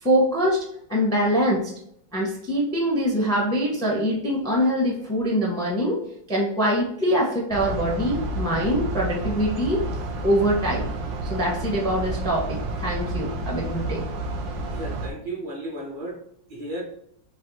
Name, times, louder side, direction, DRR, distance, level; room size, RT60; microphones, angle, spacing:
voice 1, 0.0-0.6 0.9-1.7 2.1-6.0 6.3-9.8 10.2-10.9 11.3-14.0, equal, 5° left, -2 dB, 0.6 m, -23 dB
sound 1, 7.5-15.1, right 2 dB, 75° right, 1.4 m, -30 dB
voice 2, 14.7-16.2 16.5-16.8, right 1 dB, 55° right, -2 dB, 1.8 m, -34 dB
5.2 x 2.3 x 4.0 m, 0.69 s
omnidirectional pair, 2.1 m